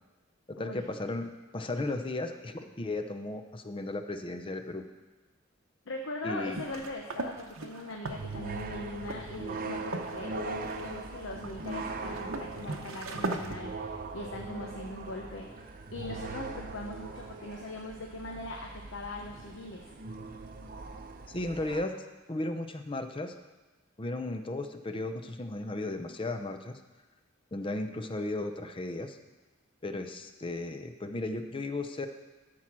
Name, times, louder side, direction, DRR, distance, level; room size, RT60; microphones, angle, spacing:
voice 1, 0.5-4.8 6.2-6.6 21.3-22.0 22.3-23.3 24.0-26.8 27.5-29.2 29.8-32.1, left 2 dB, 25° left, 8 dB, 0.6 m, -35 dB
voice 2, 5.9-19.9, left 2 dB, 80° left, 0 dB, 0.9 m, -41 dB
sound 1, 6.3-13.6, right 3 dB, 90° right, 0.9 m, -39 dB
sound 2, 8.0-21.8, right 3 dB, 45° right, 0.7 m, -41 dB
12.5 x 4.5 x 6.0 m, 1.2 s
head